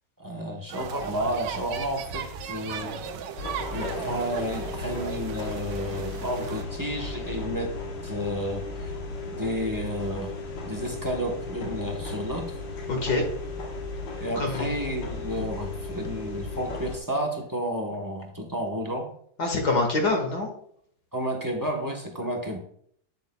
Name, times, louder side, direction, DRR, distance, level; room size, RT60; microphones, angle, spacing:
voice 1, 0.2-3.0 3.7-7.7 8.0-9.0 9.3-10.3 10.6-12.6 14.2-19.1 21.1-22.6, equal, 20° right, 2 dB, 0.6 m, -31 dB
sound 1, 0.7-6.6, right 7 dB, 80° right, 1.3 m, -37 dB
sound 2, 3.4-17.0, left 2 dB, 80° left, 1.9 m, -35 dB
voice 2, 12.9-13.2 14.4-14.7 19.4-20.5, left 2 dB, 60° left, 3 dB, 2.1 m, -25 dB
8.2 x 7.9 x 2.2 m, 0.64 s
omnidirectional pair, 1.9 m